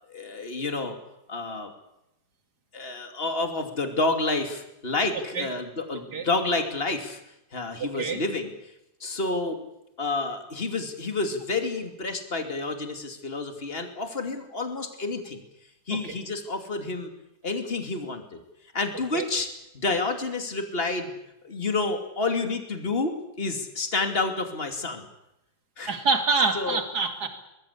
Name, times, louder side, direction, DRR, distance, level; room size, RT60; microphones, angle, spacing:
voice 1, 0.1-1.0 1.3-1.7 2.7-7.2 7.5-8.5 9.0-9.6 10.0-15.4 15.9-17.1 17.4-18.4 18.7-19.5 19.7-21.1 21.4-25.1 25.8-25.9 26.5-26.8, left 3 dB, 35° left, 6 dB, 2.9 m, -29 dB
voice 2, 5.9-6.3 7.8-8.2 15.9-16.1 19.1-19.2 25.9-27.3, right 4 dB, 80° right, 6 dB, 3.0 m, -26 dB
24.0 x 21.0 x 8.5 m, 0.87 s
omnidirectional pair, 1.7 m